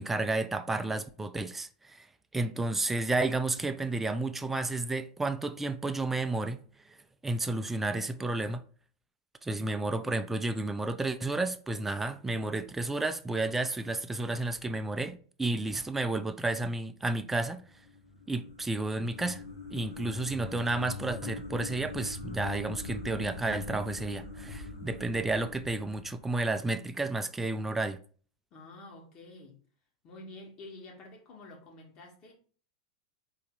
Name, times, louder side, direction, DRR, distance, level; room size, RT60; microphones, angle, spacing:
voice 1, 0.0-2.1 2.3-7.0 7.2-8.6 9.4-17.6 18.3-19.4 19.7-28.0, right 2 dB, 10° right, 0.4 m, -31 dB
sound 1, 17.6-26.9, left 3 dB, 85° left, 1.5 m, -42 dB
voice 2, 28.5-29.6 30.0-32.3, left 2 dB, 40° left, 1.9 m, -49 dB
4.1 x 3.2 x 3.9 m
hypercardioid pair, 95°, 2 cm